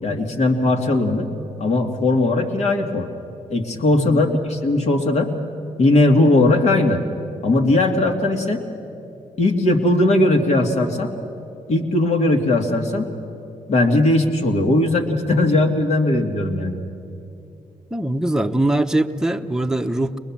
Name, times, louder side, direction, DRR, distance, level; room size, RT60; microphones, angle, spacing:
voice 1, 0.0-1.3 1.6-3.1 3.5-5.3 5.8-7.0 7.4-8.6 9.4-11.1 11.7-13.1 13.7-16.8, left 2 dB, 60° left, 4 dB, 2.2 m, -18 dB
voice 2, 4.0-4.3 17.9-20.2, right 1 dB, 5° right, 5 dB, 0.9 m, -22 dB
22.5 x 20.5 x 7.3 m, 2.8 s
supercardioid pair, 60°, 13 cm